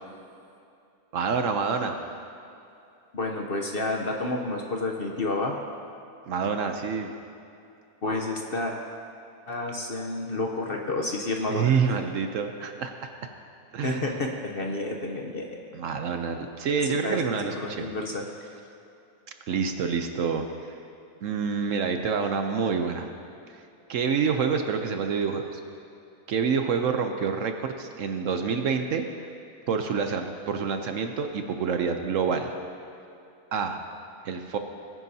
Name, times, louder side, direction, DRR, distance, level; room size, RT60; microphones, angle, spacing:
voice 1, 1.1-2.0 6.3-7.1 11.5-12.9 13.2-13.3 13.7-14.2 15.7-17.9 19.5-20.8 21.2-23.1 23.5-23.6 23.9-25.6 26.3-29.1 29.7-32.5 33.5-33.8 34.2-34.6, right 6 dB, 65° right, 6 dB, 0.9 m, -27 dB
voice 2, 3.1-5.5 8.0-8.8 9.5-11.8 13.8-15.6 17.0-18.2, left 2 dB, 45° left, 1 dB, 0.8 m, -30 dB
20.5 x 9.7 x 2.8 m, 2.6 s
omnidirectional pair, 1.6 m